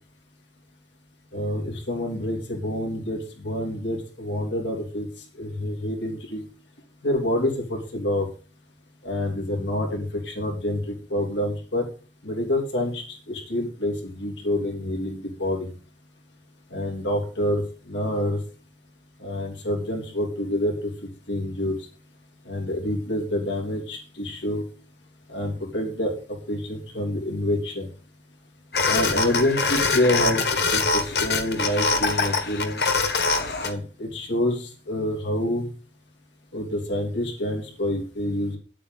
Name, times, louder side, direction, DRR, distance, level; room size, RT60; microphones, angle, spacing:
voice 1, 1.3-5.1 5.4-6.4 7.0-8.3 9.0-11.9 12.2-15.7 16.7-18.4 19.2-21.7 22.4-24.6 25.3-27.9 28.9-30.4 30.7-32.8 33.6-35.7 36.5-38.6, left 1 dB, 90° left, 1 dB, 3.3 m, -27 dB
sound 1, 28.7-33.7, left 3 dB, 60° left, 1.6 m, -24 dB
9.5 x 8.4 x 5.5 m, 0.38 s
head